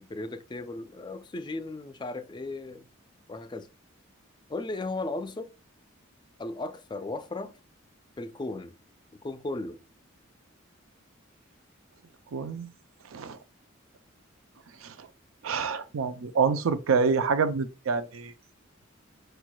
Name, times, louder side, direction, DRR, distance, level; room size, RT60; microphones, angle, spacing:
voice 1, 0.0-2.9 3.3-3.7 4.5-5.5 6.4-7.5 8.2-8.7 9.2-9.8, left 2 dB, 20° left, 0.4 m, -36 dB
voice 2, 12.3-12.7 13.1-13.4 14.8-15.1 15.4-18.3, right 5 dB, 85° right, 0.5 m, -27 dB
5.0 x 4.5 x 2.2 m
head